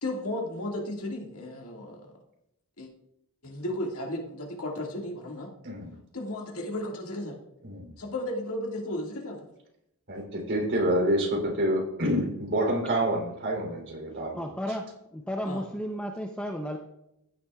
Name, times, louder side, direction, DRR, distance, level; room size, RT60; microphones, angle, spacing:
voice 1, 0.0-2.1 2.8-2.9 3.4-5.5 6.1-7.4 8.0-9.4 15.5-15.6, left 1 dB, 70° left, 0 dB, 2.1 m, -34 dB
voice 2, 5.6-6.0 7.6-8.0 10.1-14.7, right 1 dB, 55° right, 0 dB, 3.4 m, -28 dB
voice 3, 14.3-14.8 15.1-16.8, equal, 5° left, 2 dB, 0.7 m, -33 dB
15.5 x 10.0 x 2.4 m, 0.83 s
head